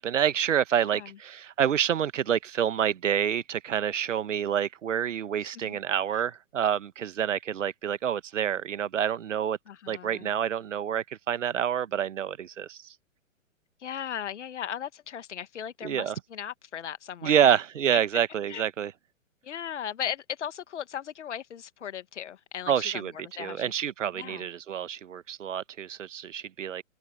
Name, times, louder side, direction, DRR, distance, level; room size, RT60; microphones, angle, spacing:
voice 1, 0.0-9.6 9.9-12.8 15.8-16.1 17.2-18.9 22.7-23.1 23.4-26.8, right 9 dB, 65° right, 1.4 m, -27 dB
voice 2, 0.8-1.2 5.4-5.8 6.1-6.2 9.7-10.3 13.8-17.6 17.9-18.0 18.5-18.7 19.4-23.7 24.1-24.5, left 9 dB, 60° left, 1.8 m, -37 dB
figure-of-eight pair, 120°, 40 cm